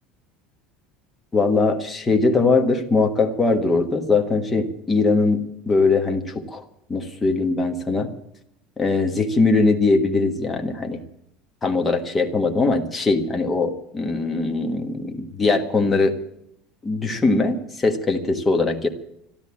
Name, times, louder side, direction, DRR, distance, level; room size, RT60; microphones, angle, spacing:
voice 1, 1.3-6.6 6.9-8.1 8.8-11.0 11.6-16.1 16.8-18.9, left 3 dB, 15° left, 4 dB, 1.4 m, -21 dB
13.0 x 12.5 x 8.5 m, 0.77 s
cardioid pair, 150°, 0 cm